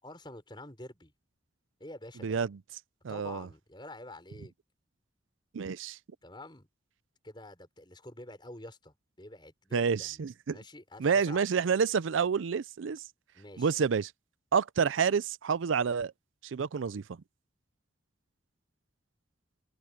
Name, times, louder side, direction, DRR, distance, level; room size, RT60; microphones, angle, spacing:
voice 1, 0.0-1.1 1.8-2.4 3.1-4.5 6.2-6.7 7.2-10.2 10.5-11.4 13.3-13.8, left 1 dB, 25° left, 5.0 m, -47 dB
voice 2, 2.2-2.6 3.0-3.5 5.5-6.0 9.7-10.6 11.0-13.0 13.6-14.1 14.5-16.1 16.4-17.2, right 6 dB, 80° right, 0.5 m, -29 dB
open air
head